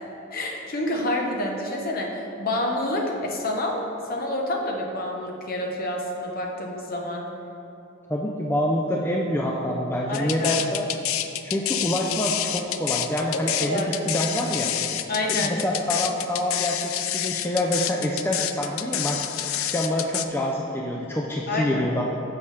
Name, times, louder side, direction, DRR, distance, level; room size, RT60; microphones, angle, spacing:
voice 1, 0.3-7.2 10.1-10.6 13.3-13.9 15.1-15.6 21.5-21.8, left 1 dB, 45° left, 0 dB, 1.0 m, -28 dB
voice 2, 8.1-10.8 11.4-14.7 15.3-19.2 19.6-22.0, left 1 dB, 10° left, -1 dB, 0.4 m, -26 dB
sound 1, 10.1-20.3, left 11 dB, 80° left, 0.4 m, -28 dB
10.0 x 6.9 x 3.3 m, 2.9 s
head